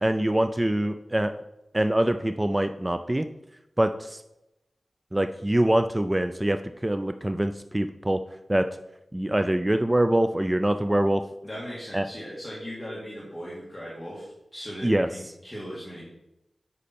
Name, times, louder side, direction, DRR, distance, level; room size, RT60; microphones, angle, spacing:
voice 1, 0.0-1.3 1.7-3.3 3.8-4.2 5.1-8.2 8.5-8.7 9.1-11.2 11.9-12.1 14.8-15.1, right 1 dB, 15° right, 8 dB, 0.3 m, -24 dB
voice 2, 11.4-16.1, equal, 10° left, -7 dB, 1.9 m, -38 dB
8.2 x 5.5 x 4.3 m, 0.90 s
wide cardioid pair, 105°, 0 cm